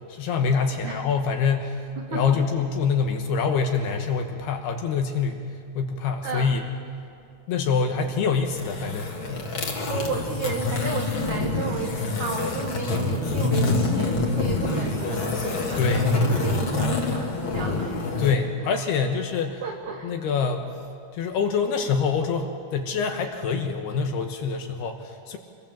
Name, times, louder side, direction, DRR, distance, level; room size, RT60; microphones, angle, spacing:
voice 1, 0.1-1.8 2.1-5.4 5.8-6.6 7.5-9.4 15.7-16.1 18.2-19.6 20.0-20.7 21.1-25.4, left 5 dB, 70° left, 5 dB, 2.7 m, -25 dB
voice 2, 6.2-6.5 9.9-18.1 18.6-18.8 19.6-20.2, right 4 dB, 90° right, 2 dB, 1.7 m, -33 dB
sound 1, 8.4-18.3, left 3 dB, 45° left, 1.7 m, -26 dB
27.0 x 22.5 x 7.4 m, 2.4 s
omnidirectional pair, 5.8 m